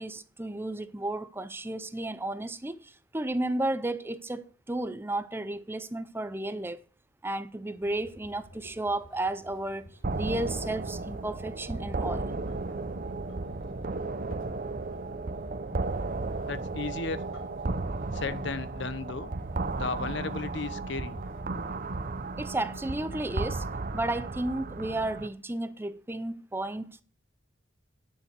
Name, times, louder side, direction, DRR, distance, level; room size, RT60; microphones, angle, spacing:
voice 1, 0.0-6.9 7.2-9.9 10.2-12.3 22.4-23.7 23.9-27.0, right 1 dB, 10° right, 0.5 m, -33 dB
sound 1, 7.7-21.4, equal, 90° left, 3.5 m, -52 dB
sound 2, 10.0-25.3, right 3 dB, 45° right, 0.8 m, -34 dB
voice 2, 16.5-17.2 18.1-19.3 19.8-21.2, left 4 dB, 60° left, 0.8 m, -34 dB
9.9 x 6.9 x 8.1 m
head